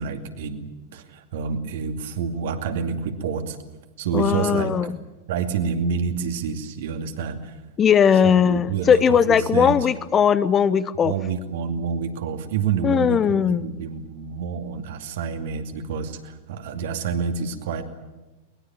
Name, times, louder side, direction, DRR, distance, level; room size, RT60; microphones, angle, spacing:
voice 1, 0.0-3.6 4.0-4.7 5.3-7.6 8.4-9.8 11.0-17.8, right 6 dB, 55° right, 6 dB, 2.4 m, -28 dB
voice 2, 4.1-5.0 7.8-11.1 12.8-13.8, left 7 dB, 25° left, 16 dB, 0.8 m, -19 dB
22.5 x 20.5 x 8.9 m, 1.1 s
figure-of-eight pair, 90°, 0 cm